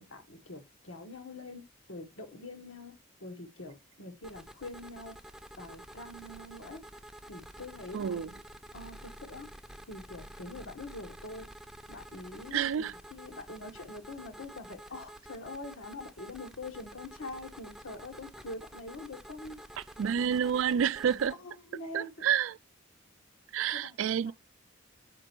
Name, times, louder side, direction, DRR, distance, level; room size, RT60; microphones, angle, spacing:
voice 1, 0.0-5.2 5.6-6.9 7.3-8.2 8.7-9.5 9.9-11.5 11.9-19.6 20.2-20.8 21.4-22.3 23.7-24.1, left 2 dB, 85° left, 1.4 m, -45 dB
sound 1, 4.2-21.3, right 1 dB, ahead, 0.4 m, -50 dB
voice 2, 7.9-8.3 12.5-13.0 20.0-21.3 21.9-22.6 23.5-24.3, right 8 dB, 75° right, 0.3 m, -29 dB
7.5 x 5.3 x 4.4 m
head